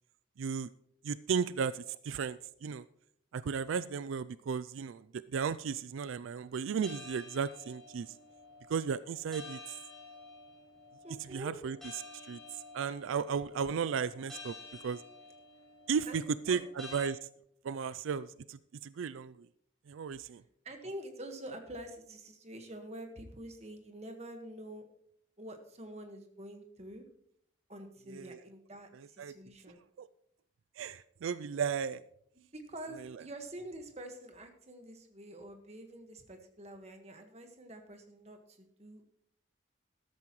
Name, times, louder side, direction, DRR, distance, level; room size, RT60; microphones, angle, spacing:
voice 1, 0.4-0.7 1.0-2.8 3.3-8.1 8.7-9.8 11.3-11.8 12.3-15.0 15.9-17.3 17.6-19.5 19.9-20.4 28.1-28.4 28.9-29.3 30.0-30.1 30.8-32.0 33.0-33.2, right 6 dB, 90° right, 16 dB, 0.4 m, -35 dB
sound 1, 6.8-17.1, left 3 dB, ahead, 4.8 m, -51 dB
voice 2, 11.0-11.5 16.1-16.6 20.6-24.8 25.4-27.0 27.7-29.8 32.5-39.0, right 1 dB, 35° right, 5 dB, 1.5 m, -47 dB
13.5 x 13.0 x 3.1 m, 0.69 s
head